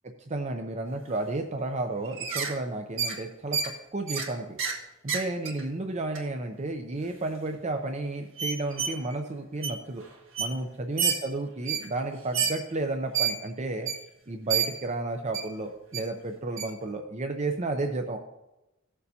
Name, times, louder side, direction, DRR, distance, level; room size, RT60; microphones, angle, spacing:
voice 1, 0.3-3.6 3.9-4.6 5.0-10.0 10.4-13.9 14.3-18.2, right 2 dB, 35° right, 5 dB, 0.6 m, -32 dB
sound 1, 2.0-2.5 3.0-3.2 3.5-3.7 4.1-4.3 4.6-4.8 5.1-5.6 6.1-6.2 7.0-7.1 7.5-7.6 8.4-9.1 9.6-9.7 10.0-10.1 10.3-10.5 11.0-11.2 11.6-11.9 12.3-12.5 13.1-13.3 13.8-14.0 14.5-14.7 15.3-15.4 15.9-16.0 16.6-16.7, right 7 dB, 65° right, 1.6 m, -28 dB
16.5 x 6.8 x 2.8 m, 0.96 s
head